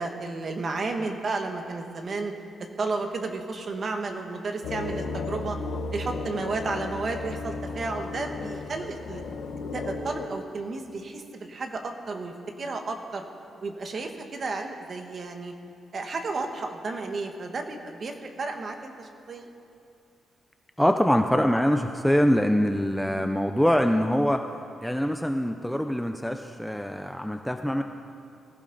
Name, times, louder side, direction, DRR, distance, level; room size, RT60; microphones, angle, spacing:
voice 1, 0.0-2.3 2.8-5.6 5.9-9.2 9.7-13.2 13.6-15.5 15.9-19.5, right 3 dB, 35° right, 4 dB, 1.2 m, -32 dB
sound 1, 4.6-10.3, left 3 dB, 90° left, 1.0 m, -34 dB
voice 2, 20.8-24.4 24.8-27.8, equal, ahead, 5 dB, 0.4 m, -24 dB
18.5 x 15.0 x 3.9 m, 2.5 s
wide cardioid pair, 165°, 0 cm